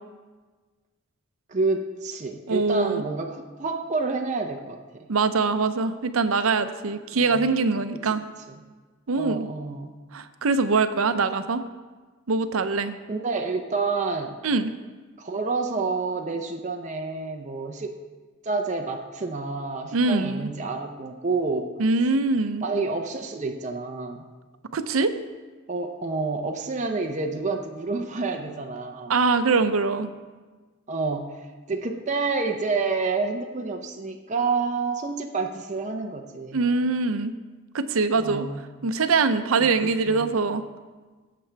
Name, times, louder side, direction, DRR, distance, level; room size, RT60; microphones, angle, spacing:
voice 1, 1.5-5.1 7.1-7.5 9.1-9.9 13.1-14.4 15.2-17.9 18.4-21.7 22.6-24.2 25.7-29.1 30.9-36.6 38.1-38.6 39.6-40.3, right 4 dB, 35° right, 3 dB, 0.6 m, -29 dB
voice 2, 2.5-3.0 5.1-8.2 9.1-9.5 10.1-11.6 12.3-13.0 14.4-14.7 19.9-20.5 21.8-22.6 24.7-25.1 29.1-30.1 36.5-37.3 37.7-38.5 38.8-40.6, right 4 dB, 80° right, 11 dB, 0.6 m, -23 dB
16.5 x 7.6 x 3.4 m, 1.3 s
head